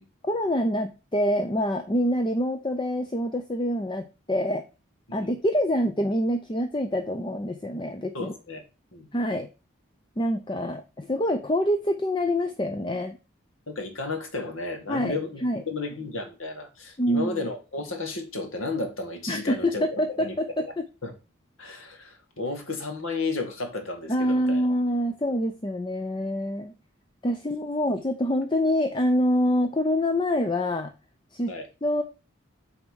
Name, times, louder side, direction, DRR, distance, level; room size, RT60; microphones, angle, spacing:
voice 1, 0.2-4.6 5.1-8.3 9.1-9.5 10.2-13.2 14.9-15.6 17.0-17.4 19.3-20.8 24.1-26.7 27.2-30.9 31.3-31.5 31.8-32.0, equal, 25° left, 0.5 m, -26 dB
voice 2, 8.1-8.6 8.9-9.1 13.7-20.6 21.0-21.1 21.6-24.6 31.5-31.7, left 3 dB, 80° left, 2.0 m, -33 dB
8.5 x 3.6 x 6.2 m
head